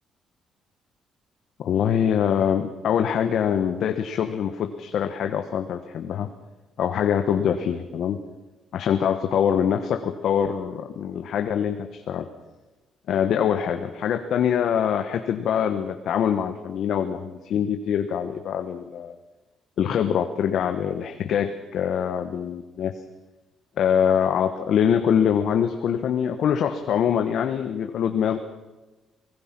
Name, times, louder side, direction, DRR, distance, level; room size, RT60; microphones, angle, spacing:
voice 1, 1.6-6.3 6.8-8.2 8.7-12.3 13.1-19.2 19.8-22.9 23.8-28.4, left 8 dB, 70° left, 6 dB, 1.3 m, -24 dB
25.0 x 18.5 x 6.1 m, 1.1 s
cardioid pair, 90°, 0 cm